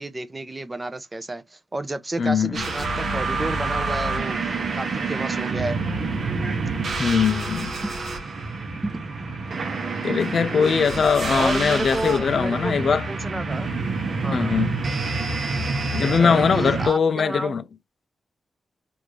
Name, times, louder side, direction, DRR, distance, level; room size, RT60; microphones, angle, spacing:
voice 1, 0.0-4.4 4.7-5.8 7.8-7.9 8.7-9.0 11.3-13.7 14.2-14.6 16.2-17.6, right 2 dB, 20° right, 0.6 m, -31 dB
voice 2, 2.2-2.6 7.0-7.7 10.0-13.1 14.3-14.8 15.9-17.6, left 6 dB, 60° left, 0.3 m, -21 dB
sound 1, 2.5-16.9, right 3 dB, 60° right, 1.0 m, -27 dB
3.1 x 2.6 x 3.1 m
cardioid pair, 90°, 0 cm